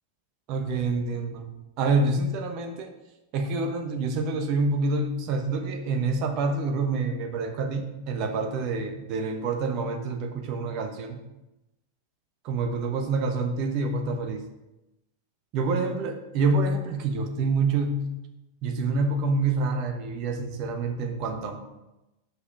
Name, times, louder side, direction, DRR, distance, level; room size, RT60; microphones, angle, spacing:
voice 1, 0.5-1.5 1.8-2.9 3.3-11.2 12.4-14.4 15.5-18.1 18.6-21.6, right 3 dB, 40° right, 5 dB, 1.0 m, -27 dB
6.1 x 5.7 x 5.3 m, 0.96 s
figure-of-eight pair, 90°, 0 cm